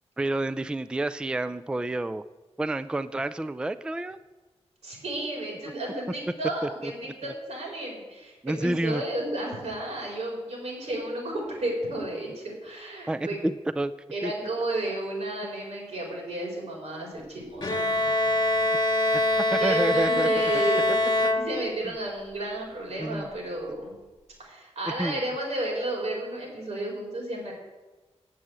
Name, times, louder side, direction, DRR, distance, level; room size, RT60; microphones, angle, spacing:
voice 1, 0.2-2.2 2.6-4.2 7.2-7.3 8.4-9.0 13.1-13.9 14.2-14.3 19.5-20.3 20.5-20.6 23.0-23.3 25.0-25.2, right 1 dB, 10° right, 12 dB, 0.3 m, -29 dB
voice 2, 4.8-13.4 14.1-18.2 18.5-18.6 19.6-21.0 21.3-23.9 24.4-27.5, right 1 dB, 85° right, -1 dB, 4.6 m, -32 dB
Bowed string instrument, 17.6-22.1, left 1 dB, 40° left, 1.3 m, -24 dB
8.5 x 7.5 x 8.0 m, 1.2 s
wide cardioid pair, 100°, 11 cm